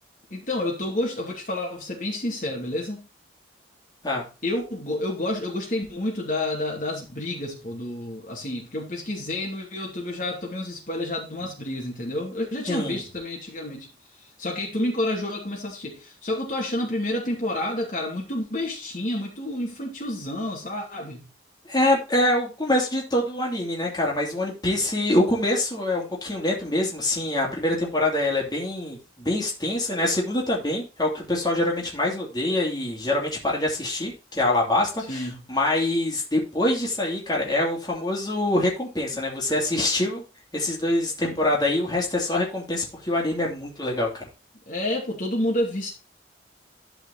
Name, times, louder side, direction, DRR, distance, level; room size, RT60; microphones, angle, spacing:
voice 1, 0.3-3.0 4.4-13.9 14.4-21.3 35.1-35.4 41.2-41.6 44.7-45.9, left 1 dB, 45° left, 2.5 m, -29 dB
voice 2, 12.7-13.0 21.7-40.2 40.5-44.3, left 1 dB, 20° left, 2.9 m, -25 dB
12.0 x 5.0 x 4.1 m
head